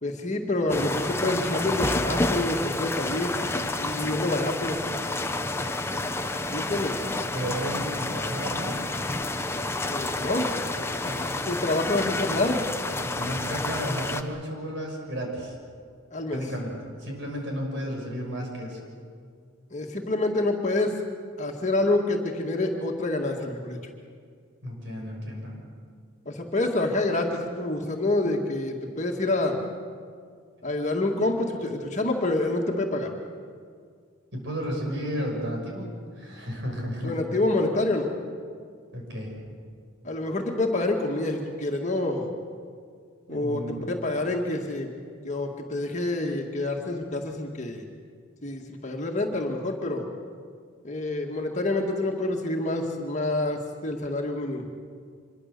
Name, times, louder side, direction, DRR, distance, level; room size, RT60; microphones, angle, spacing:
voice 1, 0.0-4.8 6.5-7.0 9.9-10.5 11.5-12.6 16.1-16.4 19.7-21.0 21.4-23.8 26.3-29.6 30.6-33.1 37.0-38.1 40.0-42.3 43.3-43.6 43.9-44.9 45.2-47.8 48.4-50.1 50.8-54.7, left 2 dB, 35° left, 1 dB, 2.0 m, -27 dB
sound 1, 0.7-14.2, left 2 dB, 10° left, 0.9 m, -29 dB
voice 2, 7.3-8.8 11.0-11.3 13.0-15.6 16.3-18.8 24.6-25.6 34.3-37.1 38.9-39.3 43.3-44.0, equal, 55° right, 0 dB, 6.3 m, -33 dB
25.5 x 23.0 x 6.8 m, 2.1 s
head